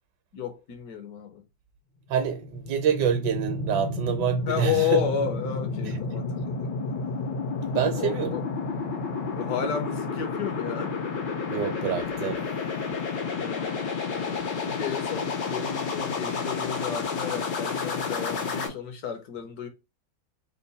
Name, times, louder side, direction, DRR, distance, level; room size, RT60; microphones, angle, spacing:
voice 1, 0.3-1.4 4.5-6.7 7.8-8.4 9.3-11.0 13.3-19.7, left 8 dB, 65° left, 1.1 m, -32 dB
voice 2, 2.1-5.0 7.7-8.3 11.5-12.4, right 7 dB, 80° right, 1.4 m, -26 dB
sound 1, 2.2-18.7, left 4 dB, 90° left, 1.7 m, -31 dB
3.7 x 2.2 x 3.9 m
omnidirectional pair, 1.9 m